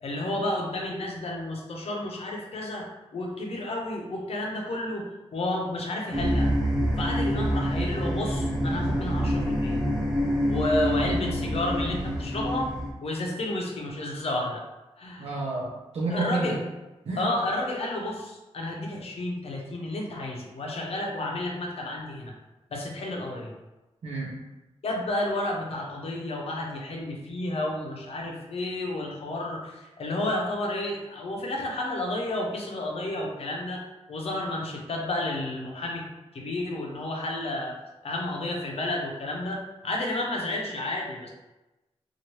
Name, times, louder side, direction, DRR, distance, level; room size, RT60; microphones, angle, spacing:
voice 1, 0.0-6.5 7.0-9.8 10.5-12.7 13.0-14.6 15.0-15.4 16.1-16.6 17.2-22.3 22.7-23.6 24.8-33.8 34.1-36.1 36.3-37.8 38.0-41.3, left 1 dB, 65° left, -1 dB, 0.7 m, -31 dB
sound 1, 6.1-12.9, equal, 5° right, 0.6 m, -26 dB
voice 2, 15.2-16.6 17.1-17.3 24.0-24.4, right 3 dB, 70° right, -6 dB, 0.6 m, -30 dB
2.9 x 2.5 x 2.9 m, 1.0 s
wide cardioid pair, 105°, 11 cm